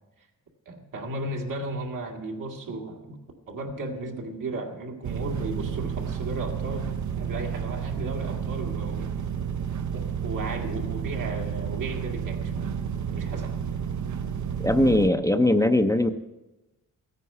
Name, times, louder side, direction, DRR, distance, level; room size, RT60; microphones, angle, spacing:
voice 1, 0.7-3.2 3.5-9.3 9.9-12.7 13.1-13.5, right 2 dB, 80° right, 1 dB, 2.2 m, -35 dB
sound 1, 5.0-15.1, right 7 dB, 65° right, 0.7 m, -31 dB
voice 2, 14.6-16.1, left 1 dB, 10° left, 7 dB, 0.5 m, -20 dB
15.0 x 9.4 x 5.6 m, 1.0 s
wide cardioid pair, 115°, 32 cm